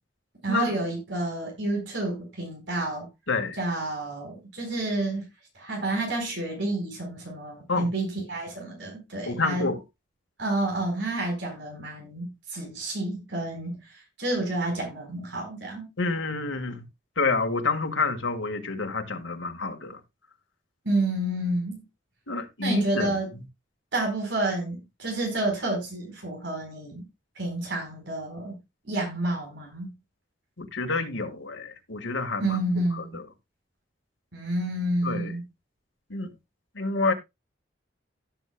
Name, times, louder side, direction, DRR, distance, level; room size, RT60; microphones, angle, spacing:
voice 1, 0.4-3.1 3.6-5.2 5.5-9.7 10.4-15.9 20.8-21.8 22.6-23.3 23.9-27.1 27.4-28.6 28.8-29.9 32.4-33.2 34.3-35.5, right 2 dB, 70° right, 4.4 m, -29 dB
voice 2, 3.3-3.6 7.7-7.9 9.3-9.8 16.0-16.8 17.2-20.0 22.3-23.2 30.6-32.6 33.0-33.2 35.0-35.4 36.1-36.3 36.8-37.1, left 3 dB, 85° left, 1.8 m, -28 dB
16.5 x 7.3 x 2.3 m
head